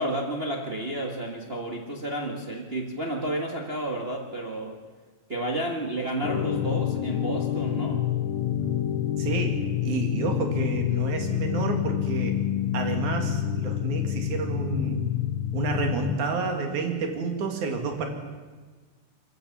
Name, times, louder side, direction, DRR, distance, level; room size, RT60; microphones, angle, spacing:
voice 1, 0.0-4.8 5.3-8.0, right 1 dB, 40° right, 1 dB, 0.8 m, -31 dB
sound 1, 6.2-16.2, left 10 dB, 70° left, 1.2 m, -27 dB
voice 2, 9.2-12.4 12.7-15.0 15.5-18.1, right 4 dB, 65° right, 4 dB, 3.6 m, -30 dB
24.0 x 15.5 x 7.2 m, 1.4 s
omnidirectional pair, 3.8 m